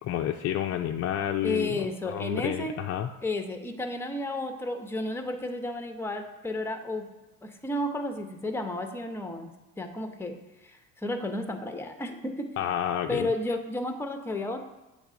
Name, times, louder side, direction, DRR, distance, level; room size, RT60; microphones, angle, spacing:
voice 1, 0.0-3.1 12.6-13.3, left 11 dB, 40° left, 4 dB, 0.4 m, -30 dB
voice 2, 1.4-2.8 3.2-7.1 7.4-10.3 10.6-12.5 13.1-14.6, left 1 dB, 5° left, 5 dB, 0.8 m, -32 dB
7.8 x 3.3 x 3.7 m, 1.0 s
supercardioid pair, 80°, 37 cm